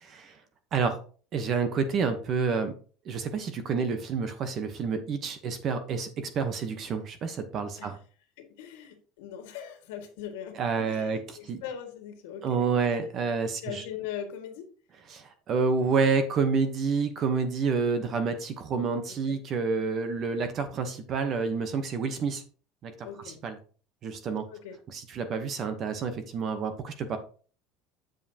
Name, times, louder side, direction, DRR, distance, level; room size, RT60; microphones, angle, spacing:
voice 1, 1.3-2.7 3.1-8.0 10.6-11.6 12.4-13.8 15.1-22.4 22.8-22.9 23.4-23.5 24.0-24.4 24.9-27.2, right 5 dB, 30° right, 9 dB, 1.0 m, -28 dB
voice 2, 8.4-13.0 13.6-14.7 19.1-19.4 23.0-23.4 24.5-24.8, left 9 dB, 85° left, 6 dB, 1.8 m, -41 dB
7.7 x 7.5 x 2.9 m, 0.40 s
cardioid pair, 170°, 0 cm